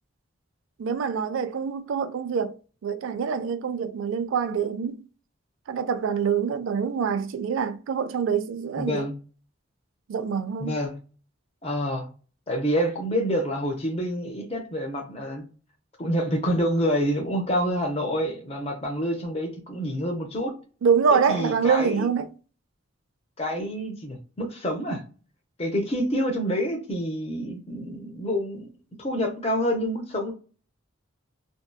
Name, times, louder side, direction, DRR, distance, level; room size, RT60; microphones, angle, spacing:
voice 1, 0.8-2.6 2.8-5.0 5.7-9.0 10.1-10.8 20.8-22.3, right 6 dB, 70° right, 0.3 m, -25 dB
voice 2, 8.8-9.1 10.6-10.9 11.6-12.1 12.5-15.4 16.0-20.5 21.1-22.1 23.4-25.0 25.6-28.7 29.0-30.3, equal, 30° left, 0.6 m, -27 dB
2.6 x 2.2 x 2.2 m
head